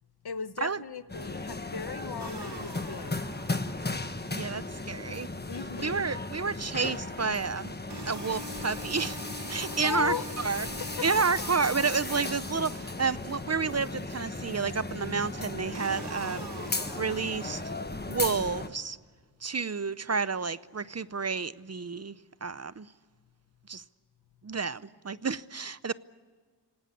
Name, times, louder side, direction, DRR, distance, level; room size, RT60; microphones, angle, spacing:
voice 1, 0.2-3.3 5.5-6.1 9.6-10.3 10.8-11.1 12.0-12.1, left 6 dB, 65° left, 1.0 m, -37 dB
sound 1, 1.1-18.7, left 2 dB, 25° left, 1.4 m, -36 dB
sound 2, 2.2-4.2 7.9-13.2 15.7-18.1, right 2 dB, 70° right, 2.7 m, -44 dB
voice 2, 4.3-5.3 5.8-7.8 8.1-9.2 9.5-10.1 10.4-10.7 11.0-17.6 18.1-19.0 19.4-22.9 23.7-23.8 24.4-25.9, right 5 dB, 40° right, 0.6 m, -30 dB
sound 3, 10.7-18.0, right 1 dB, 15° right, 7.7 m, -60 dB
26.5 x 18.5 x 8.4 m
wide cardioid pair, 70°, 42 cm